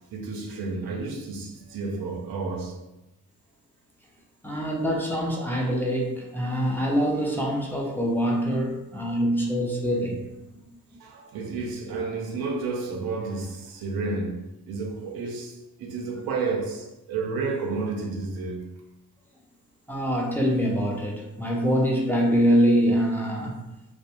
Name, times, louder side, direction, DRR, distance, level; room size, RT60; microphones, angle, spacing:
voice 1, 0.1-2.8 9.0-9.2 11.0-18.7, right 4 dB, 90° right, 0.6 m, -31 dB
voice 2, 4.4-10.2 19.9-23.6, equal, 5° left, 0.6 m, -24 dB
2.5 x 2.2 x 2.9 m
cardioid pair, 75°, 35 cm